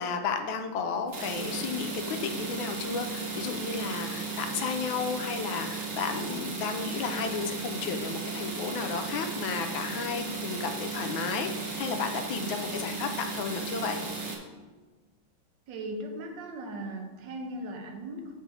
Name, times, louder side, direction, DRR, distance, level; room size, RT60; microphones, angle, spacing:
voice 1, 0.0-14.0, left 5 dB, 75° left, 5 dB, 1.3 m, -33 dB
sound 1, 1.1-14.4, right 4 dB, 50° right, 1.1 m, -35 dB
voice 2, 15.7-18.4, right 1 dB, 65° right, 3 dB, 1.4 m, -38 dB
8.2 x 4.9 x 2.7 m, 1.3 s
omnidirectional pair, 2.3 m